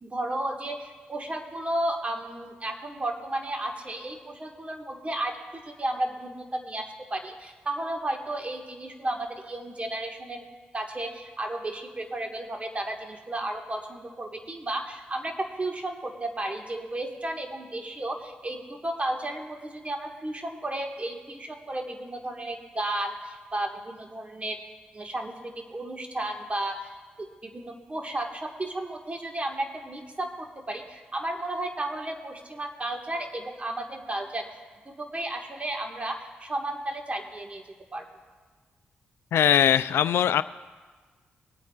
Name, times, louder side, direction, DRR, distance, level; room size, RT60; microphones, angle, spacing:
voice 1, 0.0-10.4 10.7-24.6 24.9-34.5 34.9-37.6 37.9-38.1, right 1 dB, 30° right, 3 dB, 1.7 m, -33 dB
voice 2, 39.3-40.4, left 9 dB, 80° left, 14 dB, 0.3 m, -21 dB
22.5 x 8.9 x 2.4 m, 1.4 s
supercardioid pair, 50°, 4 cm